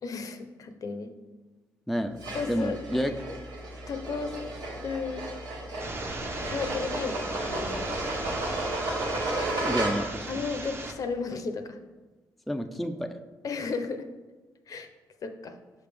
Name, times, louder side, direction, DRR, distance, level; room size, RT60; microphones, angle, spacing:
voice 1, 0.0-1.1 2.3-2.8 3.9-4.4 4.8-5.3 6.5-7.9 10.3-11.8 13.4-14.1 14.7-14.9 15.2-15.6, left 4 dB, 55° left, 8 dB, 0.6 m, -34 dB
voice 2, 1.9-2.2 2.5-3.1 9.6-10.4 12.5-13.2, equal, ahead, 6 dB, 0.4 m, -29 dB
sound 1, 2.2-10.3, right 2 dB, 90° right, 1.5 m, -33 dB
sound 2, 5.8-10.9, right 2 dB, 35° right, 0.8 m, -37 dB
5.6 x 5.1 x 3.4 m, 1.2 s
cardioid pair, 75°, 7 cm